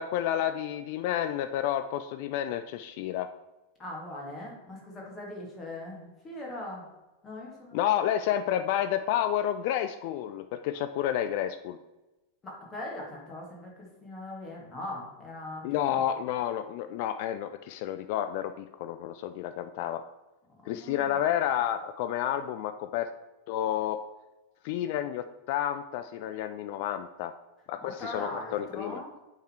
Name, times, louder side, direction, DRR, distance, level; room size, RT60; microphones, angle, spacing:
voice 1, 0.0-3.3 7.7-11.8 15.6-20.0 20.7-23.1 23.5-24.0 24.6-27.3 27.7-29.0, left 11 dB, 45° left, 10 dB, 0.3 m, -30 dB
voice 2, 3.8-6.9 7.2-7.8 12.4-16.0 20.6-21.2 27.8-29.1, left 1 dB, 20° left, -2 dB, 2.3 m, -40 dB
8.2 x 3.9 x 4.6 m, 1.0 s
figure-of-eight pair, 90°, 0 cm